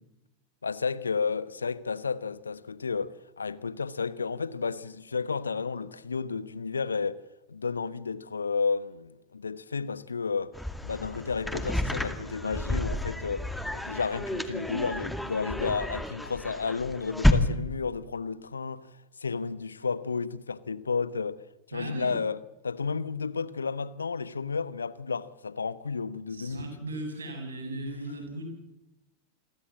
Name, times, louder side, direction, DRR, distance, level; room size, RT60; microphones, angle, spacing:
voice 1, 0.6-7.2 7.5-10.6 10.8-21.4 21.7-22.4 22.6-26.7, left 5 dB, 75° left, 1.1 m, -32 dB
sound 1, 10.5-17.3, left 1 dB, 5° left, 2.2 m, -30 dB
voice 2, 21.7-22.1 26.3-28.4, right 2 dB, 70° right, 7.6 m, -37 dB
28.0 x 23.0 x 7.6 m
figure-of-eight pair, 90°, 0 cm